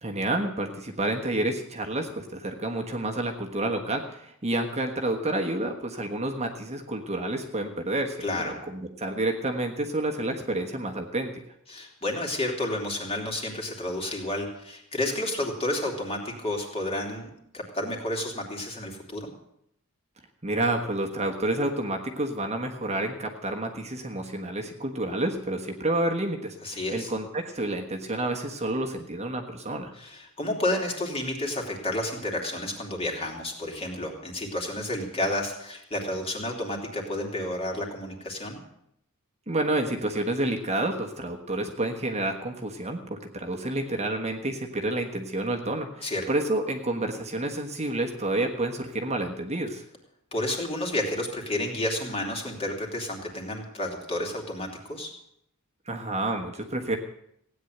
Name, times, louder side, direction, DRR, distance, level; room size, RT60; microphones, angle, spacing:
voice 1, 0.0-11.3 20.4-26.6 26.9-29.9 39.5-49.8 55.9-57.0, right 1 dB, 30° right, 3 dB, 1.4 m, -29 dB
voice 2, 8.2-8.5 11.7-19.3 26.6-27.1 30.0-38.6 46.0-46.2 50.3-55.1, left 1 dB, 25° left, 0 dB, 3.1 m, -31 dB
16.5 x 9.5 x 7.9 m, 0.75 s
head